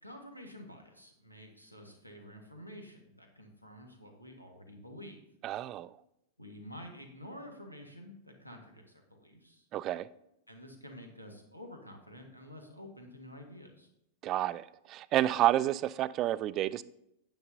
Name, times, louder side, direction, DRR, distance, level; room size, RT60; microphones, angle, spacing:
voice 1, 0.0-5.2 6.4-9.7 10.5-13.9, left 1 dB, 90° left, 1.5 m, -49 dB
voice 2, 5.4-5.9 9.7-10.1 14.2-16.8, right 13 dB, 35° right, 0.3 m, -30 dB
9.3 x 9.3 x 2.7 m
figure-of-eight pair, 90°, 0 cm